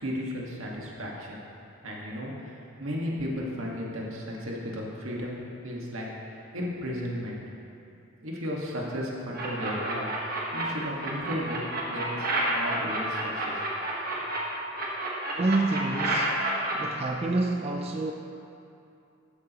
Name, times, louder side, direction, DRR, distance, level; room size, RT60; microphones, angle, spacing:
voice 1, 0.0-1.4 1.8-5.4 5.6-6.1 6.5-7.4 8.2-10.1 10.5-11.6 11.9-13.6 13.9-14.0, equal, 80° right, -3 dB, 1.7 m, -34 dB
sound 1, 9.3-10.6 11.0-14.4 14.7-16.7, right 2 dB, 45° right, 1.4 m, -30 dB
voice 2, 15.3-16.4 16.7-18.1, right 2 dB, 30° right, 3 dB, 0.3 m, -28 dB
12.5 x 8.4 x 3.0 m, 2.7 s
head